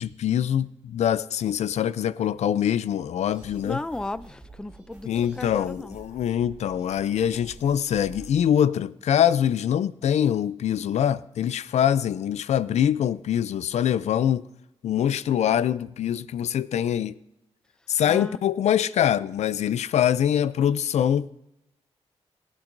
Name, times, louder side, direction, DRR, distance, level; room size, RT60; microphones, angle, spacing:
voice 1, 0.0-3.8 5.0-14.5 14.8-17.2 17.9-21.3, left 9 dB, 90° left, 0.4 m, -24 dB
sound 1, 3.3-8.5, right 2 dB, 10° right, 4.8 m, -48 dB
voice 2, 3.6-6.0 18.0-18.4, left 2 dB, 5° left, 0.4 m, -35 dB
20.5 x 9.1 x 2.6 m
wide cardioid pair, 100°, 11 cm